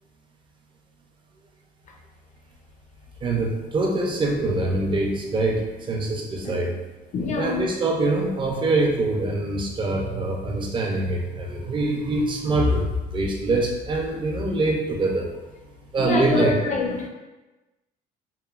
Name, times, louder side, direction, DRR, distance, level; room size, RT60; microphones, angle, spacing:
voice 1, 3.2-6.7 7.3-15.3 15.9-16.7, right 2 dB, 30° right, 1 dB, 0.5 m, -24 dB
voice 2, 7.1-7.7 16.0-17.1, left 3 dB, 45° left, 1 dB, 0.5 m, -25 dB
3.0 x 2.1 x 2.3 m, 1.1 s
cardioid pair, 110°, 17 cm